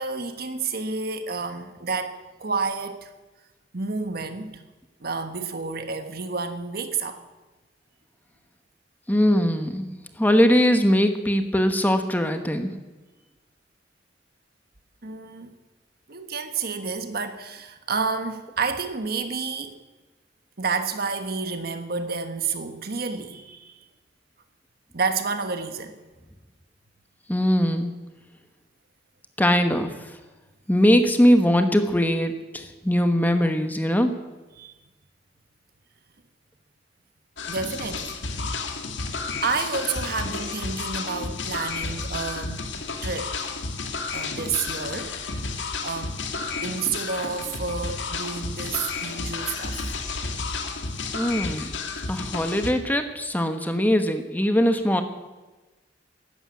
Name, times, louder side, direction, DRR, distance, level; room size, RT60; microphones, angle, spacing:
voice 1, 0.0-3.1 3.7-4.6 5.0-7.2 15.0-15.5 16.1-19.8 20.6-23.8 24.9-26.0 34.6-34.7 37.5-38.2 39.4-42.8 43.0-43.5 44.1-45.2 45.8-46.2 46.6-49.8, right 4 dB, 55° right, 1.4 m, -30 dB
voice 2, 9.1-9.9 10.2-12.7 27.3-27.9 29.4-29.9 30.7-34.1 51.1-51.7 52.1-55.0, equal, 10° left, 1.2 m, -21 dB
sound 1, 37.4-52.7, left 4 dB, 85° left, 1.9 m, -32 dB
14.0 x 11.5 x 8.6 m
head